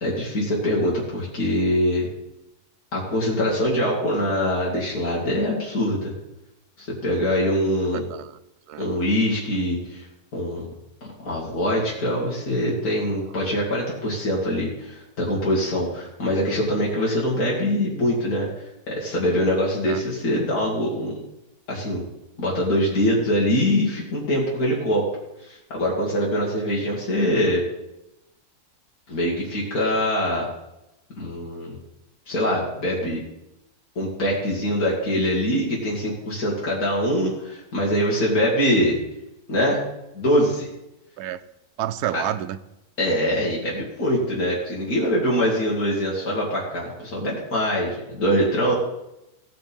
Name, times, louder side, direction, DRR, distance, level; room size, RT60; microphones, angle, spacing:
voice 1, 0.0-2.1 2.9-6.1 6.8-8.0 8.8-10.1 10.3-10.7 11.2-18.5 18.9-21.2 21.7-22.0 22.4-25.0 25.5-27.6 29.1-30.5 31.1-31.8 32.3-33.2 34.0-39.0 39.5-39.8 40.1-40.7 42.1-42.2 43.0-48.7, equal, 70° left, -5 dB, 2.7 m, -23 dB
voice 2, 7.8-8.4 8.7-8.9 19.8-20.0 41.2-41.4 41.8-42.6, right 12 dB, 90° right, 11 dB, 1.2 m, -29 dB
16.5 x 5.9 x 5.3 m, 0.88 s
omnidirectional pair, 1.6 m